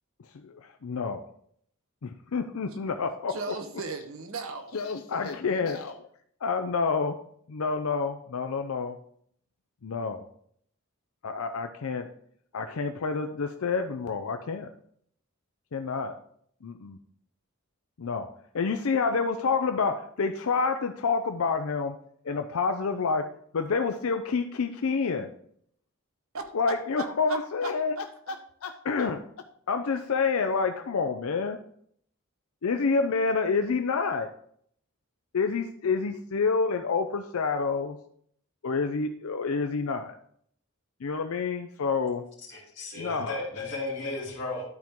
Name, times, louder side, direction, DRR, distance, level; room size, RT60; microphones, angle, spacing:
voice 1, 0.3-1.2 2.0-3.4 4.7-6.1 6.4-7.2 7.5-9.0 9.8-10.3 11.2-12.1 12.5-14.7 15.7-16.1 16.6-17.0 18.0-18.3 18.5-22.0 22.2-23.3 23.5-25.3 26.5-28.0 28.3-28.4 28.6-29.2 29.7-31.6 32.6-34.3 35.3-38.0 38.6-40.2 41.0-42.2 43.0-43.7 44.0-44.2, left 4 dB, 70° left, 7 dB, 0.5 m, -28 dB
voice 2, 3.3-4.8 26.3-26.5 27.0-27.7 28.3-28.4, right 3 dB, 70° right, 6 dB, 1.0 m, -36 dB
voice 3, 42.5-44.6, left 2 dB, 50° left, -3 dB, 3.3 m, -35 dB
11.5 x 4.5 x 3.7 m, 0.64 s
head